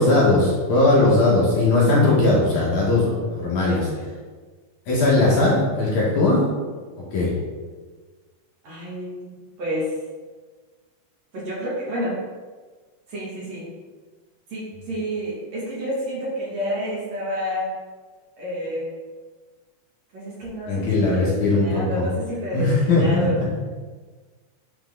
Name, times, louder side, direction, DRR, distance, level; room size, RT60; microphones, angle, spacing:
voice 1, 0.0-3.8 4.9-6.5 7.1-7.3 20.7-22.0 22.5-23.4, left 2 dB, 60° left, -6 dB, 2.7 m, -19 dB
voice 2, 2.9-3.2 3.7-4.0 8.6-9.9 11.3-12.2 13.1-13.7 14.5-17.7 18.4-18.9 20.1-23.4, equal, 50° right, -7 dB, 3.0 m, -29 dB
9.8 x 4.5 x 3.8 m, 1.4 s
omnidirectional pair, 4.3 m